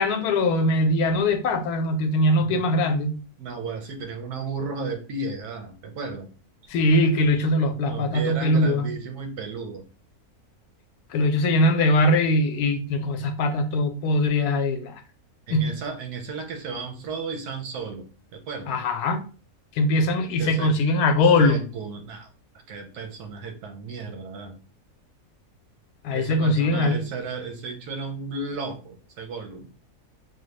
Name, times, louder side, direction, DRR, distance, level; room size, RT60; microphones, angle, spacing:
voice 1, 0.0-3.2 6.7-8.9 11.1-14.9 15.5-15.7 18.7-19.2 19.8-21.7 26.0-27.0, left 1 dB, 90° left, 1.1 m, -21 dB
voice 2, 2.5-2.8 3.4-6.3 7.9-9.9 15.5-18.1 18.3-18.8 20.4-20.7 21.4-22.3 22.7-24.6 26.1-29.7, right 4 dB, 80° right, 1.3 m, -34 dB
3.3 x 2.2 x 3.1 m
omnidirectional pair, 1.6 m